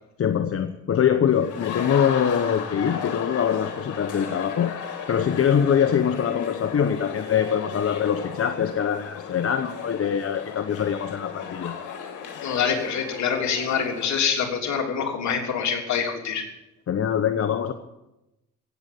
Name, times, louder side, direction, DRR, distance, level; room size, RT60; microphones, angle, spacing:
voice 1, 0.2-4.7 5.1-11.7 16.9-17.7, left 8 dB, 50° left, 8 dB, 1.0 m, -23 dB
sound 1, 1.3-14.1, left 7 dB, 85° left, 2.5 m, -35 dB
voice 2, 12.4-16.4, left 6 dB, 65° left, 1 dB, 3.4 m, -25 dB
16.5 x 8.2 x 9.3 m, 0.93 s
cardioid pair, 90°, 30 cm